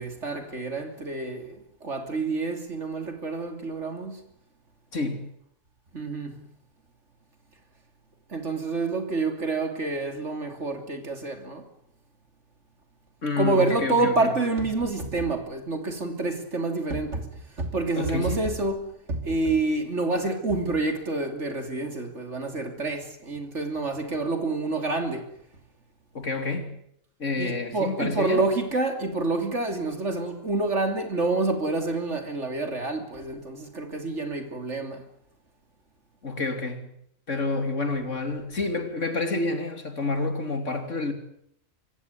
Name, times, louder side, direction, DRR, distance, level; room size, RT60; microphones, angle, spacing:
voice 1, 0.0-4.2 5.9-6.5 8.3-11.7 13.4-25.3 27.4-35.0, right 3 dB, 55° right, 3.4 m, -28 dB
voice 2, 4.9-5.3 13.2-14.3 18.0-18.5 26.1-26.8 27.2-28.4 36.2-36.9 37.3-41.1, left 3 dB, 60° left, 3.4 m, -28 dB
25.0 x 15.5 x 9.6 m
omnidirectional pair, 1.4 m